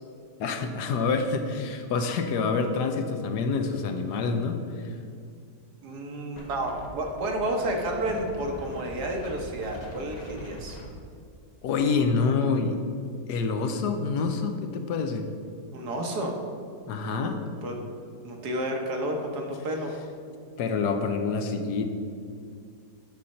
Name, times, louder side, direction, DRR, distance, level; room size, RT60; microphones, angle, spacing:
voice 1, 0.4-5.0 11.6-12.8 13.3-15.3 16.9-17.4 20.6-21.8, left 4 dB, 70° left, 6 dB, 1.2 m, -27 dB
voice 2, 5.8-10.8 15.7-16.4 17.6-17.7 18.2-19.9, right 1 dB, 65° right, 2 dB, 1.5 m, -31 dB
Wind, 6.4-11.9, equal, 40° left, 0.6 m, -43 dB
8.5 x 4.1 x 6.4 m, 2.3 s
omnidirectional pair, 1.9 m